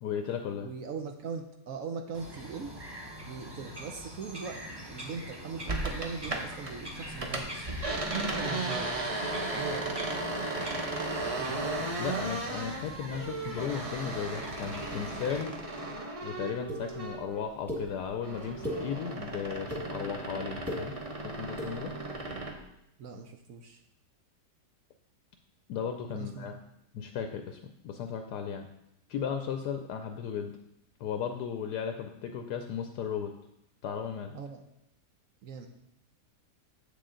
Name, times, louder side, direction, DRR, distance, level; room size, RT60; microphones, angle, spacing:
voice 1, 0.0-0.7 11.5-15.6 16.2-20.9 21.2-21.9 25.7-26.5 26.9-28.7 29.1-30.5 31.0-33.3 33.8-34.3, left 7 dB, 75° left, 6 dB, 1.1 m, -35 dB
voice 2, 0.6-2.7 3.2-4.6 4.9-7.7 8.2-8.9 9.5-9.9 11.3-11.6 23.0-23.8 26.1-26.5 34.3-34.6 35.4-35.7, right 5 dB, 60° right, 4 dB, 0.9 m, -40 dB
Bird vocalization bird call bird song, 2.1-15.4, equal, 15° right, 1.2 m, -43 dB
sound 1, 5.7-6.7 7.0-17.4 17.7-22.6, right 2 dB, 40° right, 0.5 m, -35 dB
sound 2, 16.7-16.8 17.7-17.8 18.4-18.8 19.4-19.8 20.5-20.8 21.5-21.7, equal, ahead, 1.5 m, -35 dB
7.5 x 6.7 x 3.8 m, 0.80 s
omnidirectional pair, 1.8 m